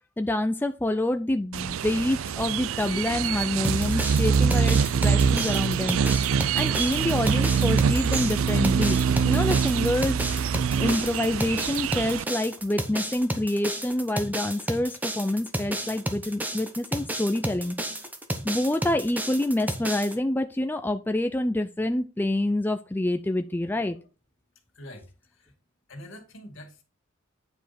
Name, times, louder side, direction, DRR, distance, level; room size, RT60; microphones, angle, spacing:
voice 1, 0.2-6.3 6.5-9.0 9.2-10.2 10.8-17.8 18.4-24.0, left 1 dB, 10° left, 0.4 m, -27 dB
sound 1, 1.5-12.2, right 6 dB, 80° right, 0.4 m, -24 dB
sound 2, 3.6-20.1, right 1 dB, 10° right, 1.0 m, -32 dB
voice 2, 24.7-25.5 25.9-26.8, left 1 dB, 65° left, 2.3 m, -45 dB
9.3 x 5.1 x 4.3 m
head